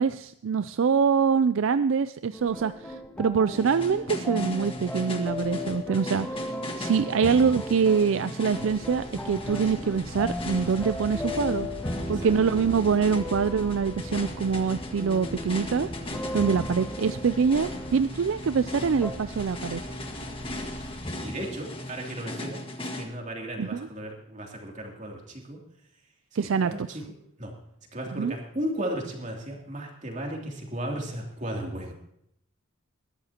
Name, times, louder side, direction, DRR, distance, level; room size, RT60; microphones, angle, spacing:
voice 1, 0.0-11.7 12.1-15.9 16.3-19.8 23.6-23.9 26.4-26.9 28.1-28.3, right 6 dB, 65° right, 13 dB, 0.4 m, -25 dB
sound 1, 2.3-17.9 19.0-19.1, left 1 dB, 5° left, 1.2 m, -37 dB
sound 2, 3.5-23.0, left 1 dB, 25° left, 1.6 m, -38 dB
sound 3, 8.4-21.0, equal, 55° left, 3.3 m, -42 dB
voice 2, 16.4-16.7 20.4-25.6 26.4-27.0 27.4-27.5 27.9-31.9, right 1 dB, 35° right, 0 dB, 2.9 m, -36 dB
20.5 x 13.0 x 2.9 m, 0.75 s
head